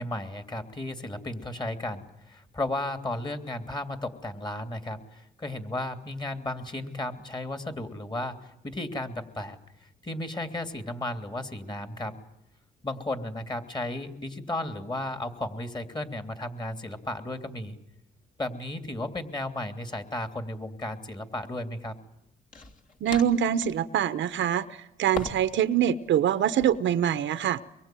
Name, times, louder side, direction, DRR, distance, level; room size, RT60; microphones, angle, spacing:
voice 1, 0.0-9.6 10.0-12.1 12.8-17.7 18.4-21.9, left 1 dB, 20° left, 8 dB, 2.9 m, -34 dB
sound 1, 20.2-20.4 22.5-23.9 25.1-25.6 25.9-26.8, left 4 dB, 40° left, 3.2 m, -40 dB
voice 2, 23.0-24.6 25.0-27.6, right 10 dB, 70° right, 13 dB, 1.1 m, -24 dB
24.0 x 23.0 x 9.2 m, 0.83 s
cardioid pair, 90°, 20 cm